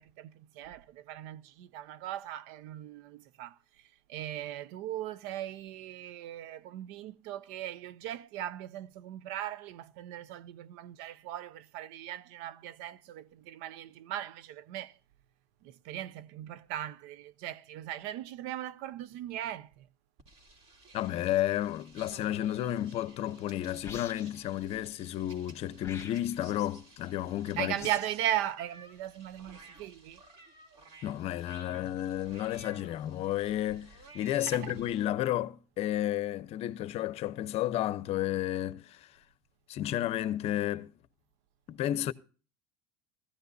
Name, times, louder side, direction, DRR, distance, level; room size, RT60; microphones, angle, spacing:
voice 1, 0.0-3.6 4.1-15.0 15.6-19.9 27.5-30.2 34.5-34.7, right 12 dB, 70° right, 0.6 m, -38 dB
sound 1, 20.2-35.0, right 2 dB, 45° right, 3.3 m, -55 dB
voice 2, 20.9-27.8 31.0-39.1 39.7-40.9 41.7-42.1, left 13 dB, 50° left, 0.7 m, -32 dB
sound 2, 23.8-24.5 25.8-26.5 27.8-28.2, left 6 dB, 20° left, 1.7 m, -46 dB
16.0 x 14.5 x 2.6 m
supercardioid pair, 120°, 14 cm